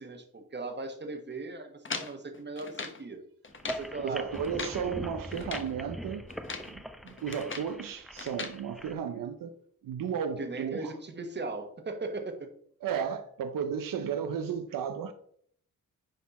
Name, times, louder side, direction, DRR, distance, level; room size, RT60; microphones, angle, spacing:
voice 1, 0.0-3.2 3.6-4.3 4.8-5.0 10.4-12.5, right 3 dB, 35° right, 1.3 m, -38 dB
sound 1, 1.8-3.0 3.4-3.9 4.3-4.8 5.3-5.7 6.3-6.7 7.1-7.7 8.2-8.6, left 4 dB, 35° left, 1.2 m, -39 dB
sound 2, 3.5-8.9, equal, ahead, 0.6 m, -42 dB
voice 2, 4.0-6.3 6.7-9.5 9.8-10.9 12.8-15.1, right 7 dB, 80° right, 0.7 m, -34 dB
9.9 x 4.3 x 4.1 m
cardioid pair, 85°, 33 cm